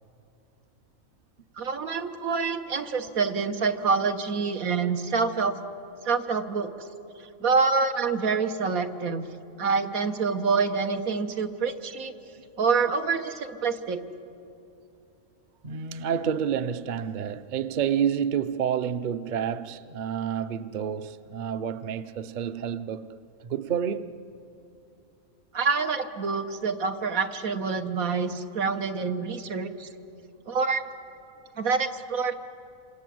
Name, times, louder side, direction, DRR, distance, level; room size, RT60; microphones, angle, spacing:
voice 1, 1.6-5.5 6.1-6.7 7.4-9.3 9.6-12.1 12.6-14.0 25.5-29.9 30.5-30.9 31.6-32.3, right 5 dB, 85° right, 1.7 m, -26 dB
voice 2, 15.6-23.1 23.4-24.2, right 8 dB, 45° right, 0.7 m, -29 dB
27.5 x 26.0 x 7.7 m
omnidirectional pair, 1.4 m